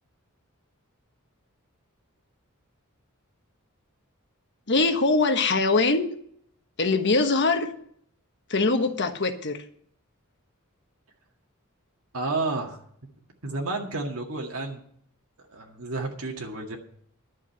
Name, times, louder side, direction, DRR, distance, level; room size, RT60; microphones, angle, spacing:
voice 1, 4.7-6.1 6.8-7.7 8.5-9.6, left 3 dB, 55° left, 7 dB, 1.3 m, -22 dB
voice 2, 12.1-12.8 13.4-14.8 15.5-16.8, right 3 dB, 80° right, 0 dB, 2.0 m, -31 dB
11.5 x 6.6 x 9.0 m, 0.65 s
head